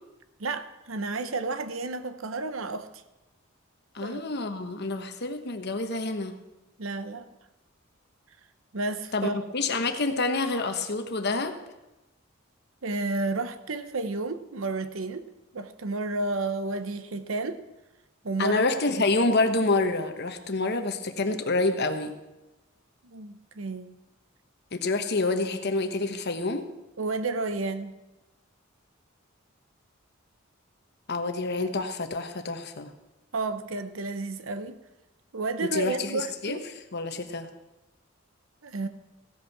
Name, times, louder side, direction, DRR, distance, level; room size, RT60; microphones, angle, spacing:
voice 1, 0.4-2.9 4.0-4.2 6.8-7.3 8.7-9.4 12.8-15.3 15.5-17.6 18.2-18.6 19.0-19.1 23.0-23.9 27.0-28.0 33.3-34.8 35.3-36.7 38.6-38.9, right 3 dB, 70° right, 11 dB, 0.9 m, -31 dB
voice 2, 3.9-6.3 9.1-11.5 18.4-22.1 24.7-26.7 31.1-32.9 35.7-36.6 36.9-37.5, left 3 dB, 55° left, 7 dB, 1.2 m, -27 dB
15.5 x 8.2 x 6.0 m, 1.0 s
head